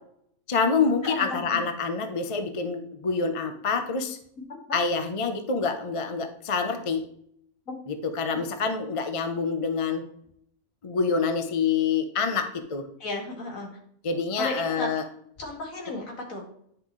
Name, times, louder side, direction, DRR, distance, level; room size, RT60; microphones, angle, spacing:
voice 1, 0.5-4.2 4.7-7.0 7.9-10.0 10.8-12.9 14.0-15.0, left 5 dB, 30° left, 7 dB, 0.6 m, -26 dB
voice 2, 1.0-1.6 4.7-4.8 7.7-7.8 13.0-13.7 14.4-15.0 15.4-16.4, left 2 dB, 65° left, 0 dB, 2.5 m, -34 dB
10.0 x 6.0 x 3.1 m, 0.69 s
omnidirectional pair, 1.5 m